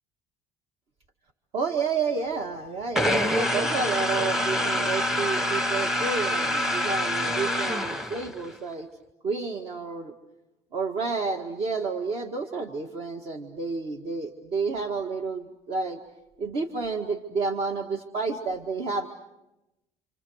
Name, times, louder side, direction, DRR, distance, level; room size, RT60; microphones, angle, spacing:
voice 1, 1.5-8.9 9.2-10.1 10.7-16.0 16.4-19.1, right 4 dB, 55° right, 3 dB, 1.8 m, -30 dB
sound 1, 3.0-8.5, equal, 5° right, 0.9 m, -26 dB
28.5 x 27.0 x 6.5 m, 0.96 s
cardioid pair, 125°, 12 cm